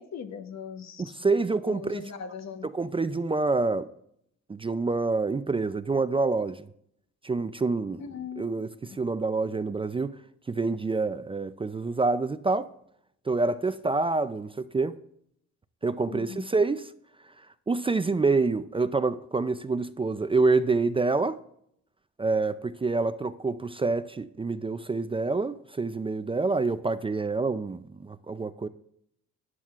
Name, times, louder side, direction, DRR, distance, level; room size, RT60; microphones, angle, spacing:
voice 1, 0.0-1.2 1.7-2.7 8.0-8.6 8.9-9.0 16.1-16.4, left 6 dB, 60° left, 1.1 m, -39 dB
voice 2, 1.0-2.0 2.6-3.9 4.5-6.7 7.2-8.0 8.4-10.1 10.5-12.7 13.3-15.0 15.8-16.9 17.7-21.4 22.2-28.7, right 3 dB, 20° right, 0.4 m, -27 dB
13.5 x 9.6 x 2.5 m
cardioid pair, 90°, 30 cm